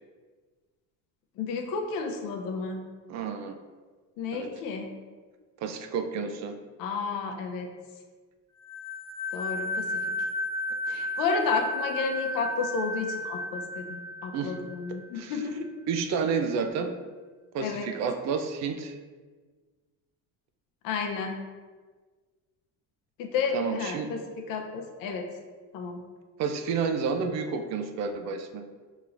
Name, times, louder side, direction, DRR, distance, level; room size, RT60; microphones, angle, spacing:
voice 1, 1.4-2.8 4.2-4.9 6.8-7.7 9.3-10.0 10.9-15.7 17.6-17.9 20.8-21.4 23.2-25.3 25.7-26.0, left 4 dB, 75° left, 3 dB, 0.8 m, -31 dB
voice 2, 3.1-3.6 4.3-4.5 5.6-6.5 14.3-14.6 15.1-15.4 15.9-16.9 17.5-18.9 23.5-24.1 26.4-28.6, right 5 dB, 50° right, 6 dB, 0.5 m, -30 dB
sound 1, 8.6-15.1, left 1 dB, 20° right, 1.4 m, -33 dB
5.5 x 3.0 x 2.5 m, 1.4 s
cardioid pair, 110°, 34 cm